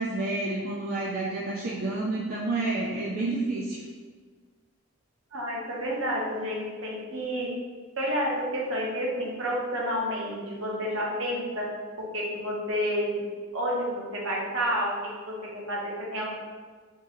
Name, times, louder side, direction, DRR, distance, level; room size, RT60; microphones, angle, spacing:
voice 1, 0.0-3.8, right 2 dB, 45° right, -4 dB, 0.4 m, -29 dB
voice 2, 5.3-7.5 8.0-11.7 12.1-13.1 13.5-14.9 15.3-16.3, equal, 65° right, -3 dB, 0.9 m, -30 dB
3.6 x 2.7 x 3.0 m, 1.5 s
head